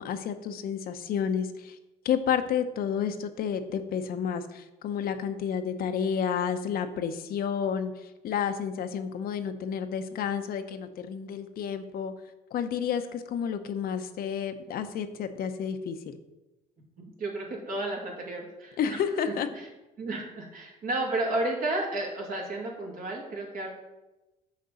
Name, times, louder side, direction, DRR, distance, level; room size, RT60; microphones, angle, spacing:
voice 1, 0.0-1.8 2.0-12.1 12.5-16.2 18.8-19.5, left 7 dB, 60° left, 8 dB, 0.8 m, -30 dB
voice 2, 17.0-19.0 19.5-19.7 20.0-23.7, right 2 dB, 60° right, -1 dB, 2.6 m, -32 dB
6.5 x 5.2 x 6.9 m, 1.0 s
cardioid pair, 110°, 17 cm